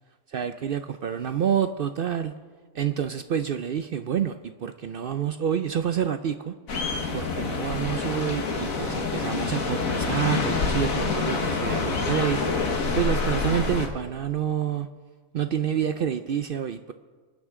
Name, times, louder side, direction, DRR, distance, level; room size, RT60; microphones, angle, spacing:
voice 1, 0.3-2.3 2.7-6.5 7.1-14.9 15.3-16.9, right 9 dB, 70° right, 10 dB, 0.5 m, -28 dB
sound 1, 6.7-13.9, left 4 dB, 80° left, 1.9 m, -27 dB
26.5 x 9.7 x 3.7 m, 1.5 s
omnidirectional pair, 1.4 m